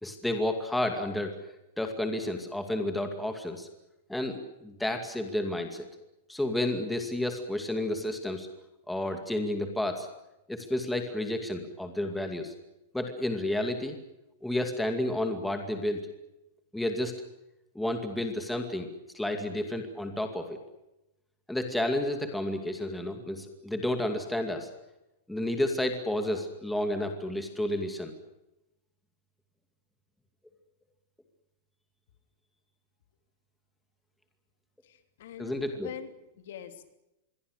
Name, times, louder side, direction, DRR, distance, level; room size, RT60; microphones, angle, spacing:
voice 1, 0.0-1.4 1.8-3.7 4.1-5.9 6.3-8.5 8.9-10.1 10.5-12.5 12.9-14.0 14.4-16.1 16.7-17.1 17.7-18.9 19.1-20.6 21.5-24.7 25.3-28.1 35.4-35.9, left 1 dB, ahead, 5 dB, 2.4 m, -31 dB
voice 2, 34.8-36.9, left 10 dB, 60° left, 8 dB, 2.9 m, -45 dB
26.5 x 23.0 x 6.7 m, 0.93 s
supercardioid pair, 175°, 0 cm